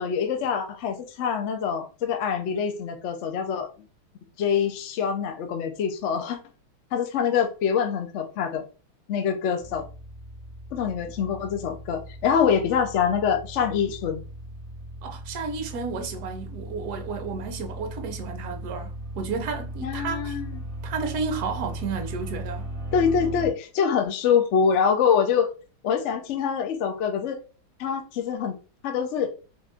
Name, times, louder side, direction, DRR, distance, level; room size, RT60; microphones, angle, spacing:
voice 1, 0.0-3.7 4.4-6.4 6.9-8.6 9.1-9.8 10.7-14.2 19.8-20.5 22.9-25.5 25.8-27.4 27.8-28.6 28.8-29.3, left 7 dB, 75° left, 0.6 m, -25 dB
sound 1, 9.6-23.5, right 1 dB, 20° right, 1.4 m, -37 dB
voice 2, 15.0-20.4 20.8-22.7, right 5 dB, 60° right, 1.2 m, -32 dB
4.2 x 2.4 x 3.5 m
omnidirectional pair, 2.2 m